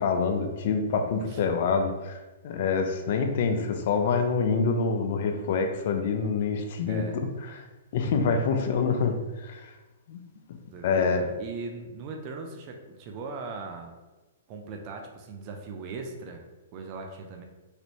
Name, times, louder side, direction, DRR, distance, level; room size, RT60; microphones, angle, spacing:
voice 1, 0.0-2.2 2.4-7.0 7.5-7.6 7.9-9.6 10.1-10.2 10.8-11.2, left 5 dB, 55° left, 5 dB, 0.4 m, -26 dB
voice 2, 1.2-1.5 6.9-7.2 10.7-11.1 11.4-13.9 14.5-16.4 16.7-17.4, right 4 dB, 40° right, 2 dB, 0.4 m, -39 dB
3.2 x 2.5 x 2.9 m, 1.1 s
hypercardioid pair, 135°, 0 cm